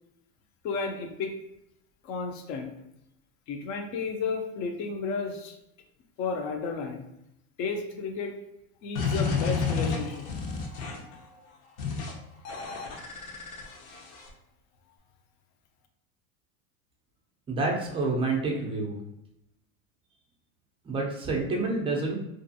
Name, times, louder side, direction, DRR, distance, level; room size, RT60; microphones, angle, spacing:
voice 1, 0.6-1.3 2.0-2.7 3.5-5.5 6.2-7.0 7.6-8.4 8.8-11.5, left 4 dB, 45° left, 5 dB, 0.5 m, -33 dB
sound 1, 9.0-11.1 11.8-12.1 12.5-14.3, left 5 dB, 70° left, 0.8 m, -31 dB
voice 2, 17.5-19.0 20.8-22.2, right 3 dB, 15° right, -1 dB, 0.4 m, -28 dB
2.6 x 2.3 x 2.6 m, 0.83 s
supercardioid pair, 115°, 42 cm